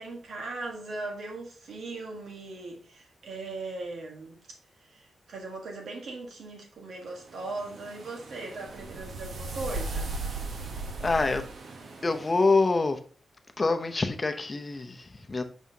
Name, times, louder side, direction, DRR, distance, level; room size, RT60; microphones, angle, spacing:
voice 1, 0.0-4.4 4.8-10.1, right 3 dB, 85° right, 1.6 m, -39 dB
sound 1, 7.3-12.6, right 2 dB, 65° right, 0.9 m, -37 dB
voice 2, 11.0-11.4 12.0-13.0 13.6-15.4, left 3 dB, 25° left, 0.7 m, -26 dB
6.2 x 5.5 x 2.8 m
wide cardioid pair, 145°, 0 cm